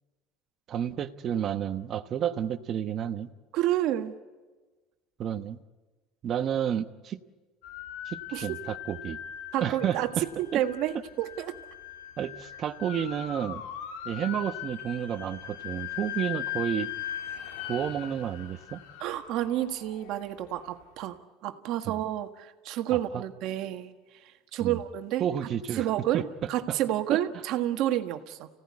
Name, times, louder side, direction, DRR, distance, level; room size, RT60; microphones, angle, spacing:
voice 1, 0.7-3.3 5.2-5.6 6.2-7.2 8.1-9.2 9.6-10.3 10.5-10.6 12.2-13.6 14.0-16.9 17.7-18.8 21.8-21.9 22.9-23.2 24.6-24.8 25.2-25.9 26.1-26.8 27.1-27.2, right 9 dB, 30° right, 9 dB, 1.0 m, -31 dB
voice 2, 3.5-4.2 8.3-8.6 9.5-10.1 10.5-11.6 19.0-23.9 24.2-25.3 25.8-26.2 26.5-28.5, right 13 dB, 50° right, 7 dB, 1.6 m, -30 dB
sound 1, 7.6-20.7, left 11 dB, 80° left, 1.8 m, -40 dB
29.5 x 17.0 x 9.7 m, 1.3 s
cardioid pair, 170°, 0 cm